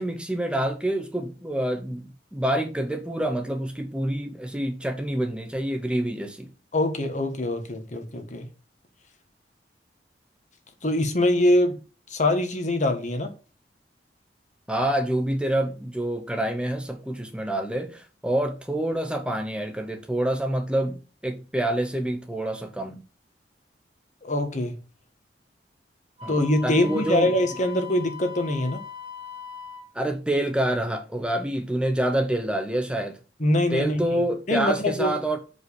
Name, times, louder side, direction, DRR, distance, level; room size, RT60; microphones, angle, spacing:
voice 1, 0.0-6.5 14.7-23.0 26.2-26.4 26.6-27.3 29.9-33.2 33.7-35.4, right 1 dB, 5° right, 0.8 m, -27 dB
voice 2, 6.7-8.4 10.8-11.8 12.1-13.3 24.2-24.7 26.3-28.8 33.4-34.2 34.5-35.1, left 1 dB, 45° left, 1.6 m, -23 dB
Wind instrument woodwind instrument, 26.2-29.9, left 7 dB, 35° right, 1.4 m, -40 dB
6.3 x 5.3 x 6.8 m
head